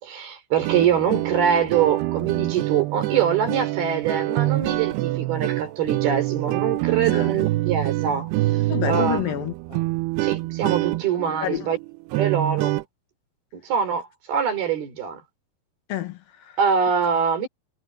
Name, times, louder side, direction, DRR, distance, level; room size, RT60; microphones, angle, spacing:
voice 1, 0.0-9.2 10.2-11.8 12.1-12.8 13.6-15.2 16.6-17.5, right 7 dB, 70° right, 6.2 m, -24 dB
sound 1, 0.6-12.8, right 19 dB, 90° right, 2.8 m, -26 dB
voice 2, 7.0-7.3 8.7-9.8 11.4-11.7 15.9-16.6, left 11 dB, 70° left, 2.9 m, -29 dB
omnidirectional pair, 4.6 m